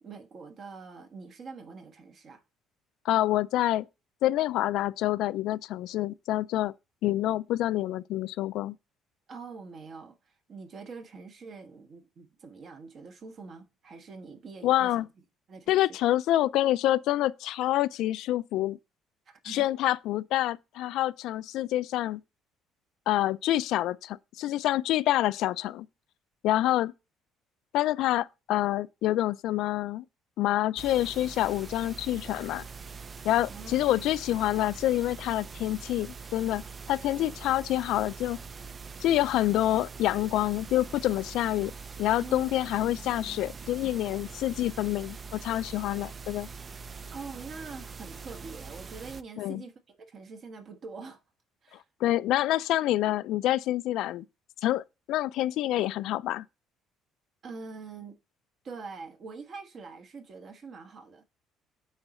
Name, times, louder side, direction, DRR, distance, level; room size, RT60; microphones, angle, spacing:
voice 1, 0.0-2.4 9.3-15.0 15.5-15.8 19.3-19.7 33.5-34.1 37.2-37.3 42.2-42.8 47.1-51.2 51.6-51.8 57.4-58.2 58.6-61.2, right 4 dB, 45° right, 1.3 m, -44 dB
voice 2, 3.1-3.9 4.2-6.7 7.0-8.8 14.6-15.1 15.7-18.8 19.4-22.2 23.1-25.9 26.4-26.9 27.7-30.0 30.4-32.6 33.2-36.6 36.9-38.4 39.0-41.7 42.0-46.5 49.4-49.6 52.0-54.2 54.6-56.4, left 14 dB, 75° left, 0.3 m, -27 dB
sound 1, 30.8-49.2, right 5 dB, 30° right, 0.4 m, -43 dB
9.0 x 4.0 x 4.2 m
cardioid pair, 120°, 0 cm